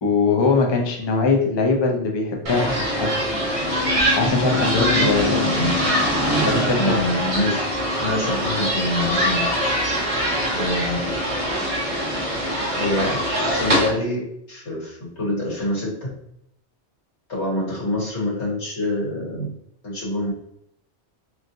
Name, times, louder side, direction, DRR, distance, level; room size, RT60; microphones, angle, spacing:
voice 1, 0.0-3.1 4.2-5.4 6.5-7.0, left 4 dB, 35° left, 1 dB, 0.4 m, -21 dB
sound 1, 2.5-13.9, equal, 35° right, 0.7 m, -23 dB
voice 2, 5.0-5.7 6.5-7.6 8.0-9.5 9.9-10.0 10.5-11.2 12.7-14.2 14.5-16.1 17.3-19.5 19.8-20.3, left 1 dB, 90° left, -6 dB, 1.7 m, -26 dB
3.1 x 2.6 x 2.5 m, 0.73 s
omnidirectional pair, 1.1 m